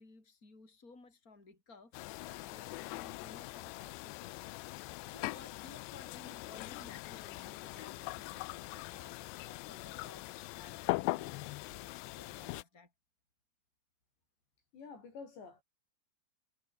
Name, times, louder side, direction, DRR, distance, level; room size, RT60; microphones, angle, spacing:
voice 1, 0.0-4.6 5.1-12.9, left 3 dB, 15° left, 6.7 m, -57 dB
sound 1, 1.9-12.6, left 23 dB, 80° left, 2.6 m, -41 dB
voice 2, 14.7-15.6, left 5 dB, 65° left, 8.0 m, -49 dB
omnidirectional pair, 5.5 m